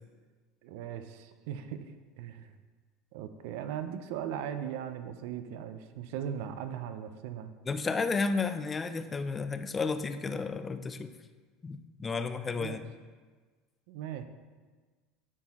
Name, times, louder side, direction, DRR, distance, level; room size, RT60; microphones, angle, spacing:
voice 1, 0.6-2.5 3.1-7.5 12.6-12.8 13.9-14.2, right 9 dB, 75° right, 9 dB, 0.5 m, -38 dB
voice 2, 7.7-11.1 11.6-12.8, left 4 dB, 20° left, 10 dB, 0.4 m, -32 dB
9.7 x 4.4 x 3.6 m, 1.4 s
supercardioid pair, 135°, 0 cm